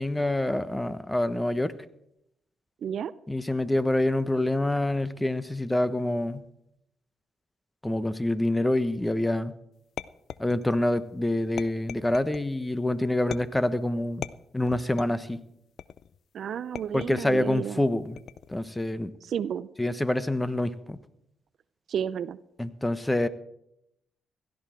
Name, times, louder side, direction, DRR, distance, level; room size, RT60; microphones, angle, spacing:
voice 1, 0.0-1.7 3.3-6.4 7.8-9.5 10.4-14.3 14.5-15.4 16.9-18.2 18.5-19.1 19.8-21.0 22.6-23.3, left 1 dB, 10° left, 14 dB, 1.1 m, -26 dB
voice 2, 2.8-3.1 16.3-17.8 19.2-19.7 21.9-22.4, right 8 dB, 65° right, 17 dB, 0.5 m, -31 dB
sound 1, 10.0-10.9 11.6-12.5 13.3-13.7 14.2-15.3 15.8-16.2 16.7-17.4 18.2-18.6, left 9 dB, 65° left, 0.5 m, -40 dB
16.5 x 13.0 x 4.5 m, 0.79 s
hypercardioid pair, 50°, 0 cm